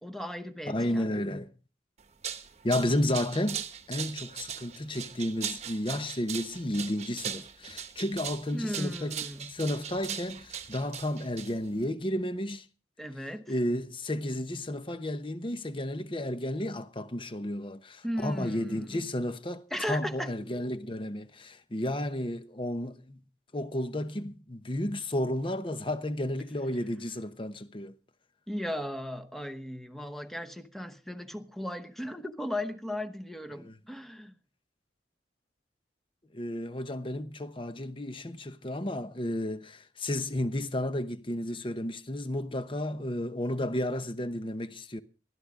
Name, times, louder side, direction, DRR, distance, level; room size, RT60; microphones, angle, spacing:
voice 1, 0.0-1.1 8.5-9.5 13.0-13.5 18.0-19.0 19.7-20.3 28.5-34.3, left 1 dB, ahead, 0.9 m, -36 dB
voice 2, 0.7-1.5 2.6-12.7 13.5-23.2 23.5-27.9 33.6-33.8 36.3-45.0, left 1 dB, 30° left, 0.9 m, -32 dB
sound 1, 2.0-11.8, right 8 dB, 40° right, 1.0 m, -39 dB
20.0 x 13.0 x 3.7 m
head